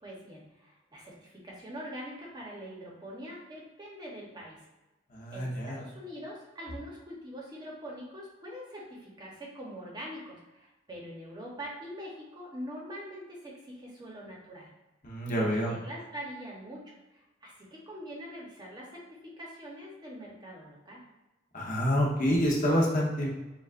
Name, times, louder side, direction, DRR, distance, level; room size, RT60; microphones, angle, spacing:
voice 1, 0.0-4.6 5.3-14.7 15.3-21.0, equal, 20° right, -3 dB, 0.9 m, -44 dB
voice 2, 5.1-5.8 15.0-15.7 21.5-23.3, equal, 45° left, -2 dB, 0.9 m, -27 dB
6.9 x 2.4 x 2.5 m, 1.1 s
head